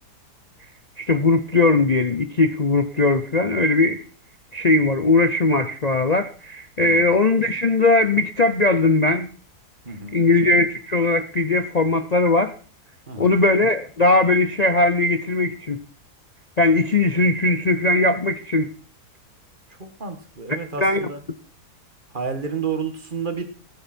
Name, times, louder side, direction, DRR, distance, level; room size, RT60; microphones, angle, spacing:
voice 1, 1.0-4.0 4.5-9.3 10.1-12.5 13.2-15.8 16.6-18.7 20.8-21.1, left 2 dB, 45° left, 0.5 m, -19 dB
voice 2, 9.9-10.3 13.1-13.4 20.0-21.2 22.1-23.4, right 5 dB, 30° right, 1.9 m, -30 dB
19.0 x 9.0 x 4.4 m
omnidirectional pair, 1.7 m